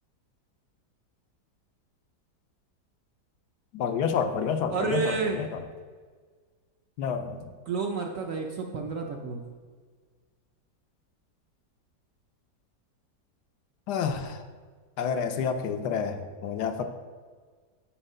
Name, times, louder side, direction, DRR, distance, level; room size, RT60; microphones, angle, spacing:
voice 1, 3.7-5.6 7.0-7.4 13.9-14.4 15.0-16.8, left 6 dB, 75° left, 7 dB, 1.1 m, -29 dB
voice 2, 4.7-5.5 7.7-9.4, right 4 dB, 60° right, 2 dB, 0.9 m, -30 dB
8.8 x 4.5 x 5.5 m, 1.5 s
omnidirectional pair, 1.9 m